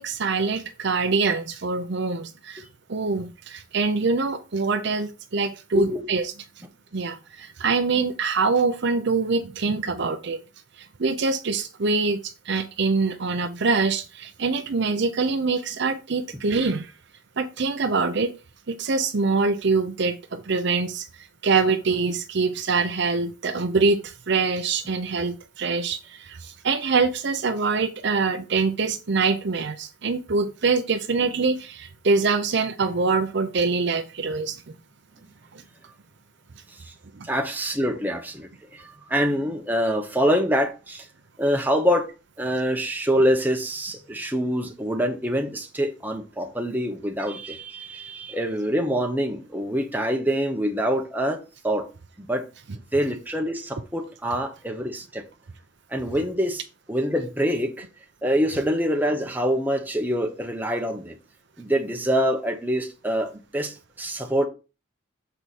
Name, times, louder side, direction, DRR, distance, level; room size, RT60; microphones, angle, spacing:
voice 1, 0.0-2.6 2.9-6.3 6.9-10.4 11.0-16.9 17.4-18.3 18.7-34.8 35.5-35.6 37.2-37.3, right 4 dB, 55° right, 0.6 m, -24 dB
voice 2, 5.7-6.0 37.3-38.5 39.1-41.0 41.4-42.1 42.4-51.9 52.3-52.4 52.9-55.2 55.9-56.6 56.9-57.9 58.2-61.1 61.6-64.5, equal, 10° right, 1.0 m, -25 dB
6.9 x 4.6 x 4.2 m
head